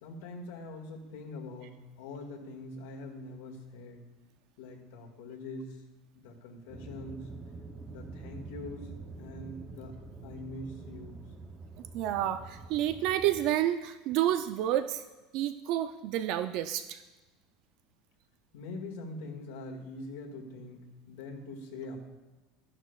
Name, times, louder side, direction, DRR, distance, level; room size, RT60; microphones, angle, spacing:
voice 1, 0.0-4.0 4.6-5.8 6.1-7.3 7.9-8.9 9.2-11.3 18.5-22.0, left 2 dB, 90° left, 1 dB, 1.8 m, -43 dB
sound 1, 6.7-13.5, right 3 dB, 15° right, 0.7 m, -46 dB
voice 2, 11.8-15.0 15.3-17.0, right 12 dB, 50° right, 10 dB, 0.4 m, -30 dB
13.0 x 10.5 x 2.4 m, 1.2 s
cardioid pair, 170°, 0 cm